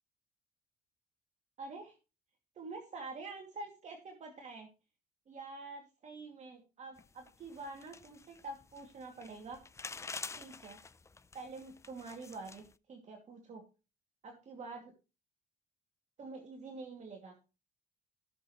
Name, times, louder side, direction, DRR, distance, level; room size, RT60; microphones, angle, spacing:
voice 1, 1.6-2.0 2.6-4.7 5.3-9.6 10.3-10.8 11.3-13.6 14.2-14.9 16.2-17.3, right 3 dB, 45° right, 1 dB, 2.4 m, -47 dB
sound 1, 7.0-12.7, left 4 dB, 15° left, 0.5 m, -48 dB
16.5 x 6.8 x 3.1 m, 0.32 s
cardioid pair, 110°, 17 cm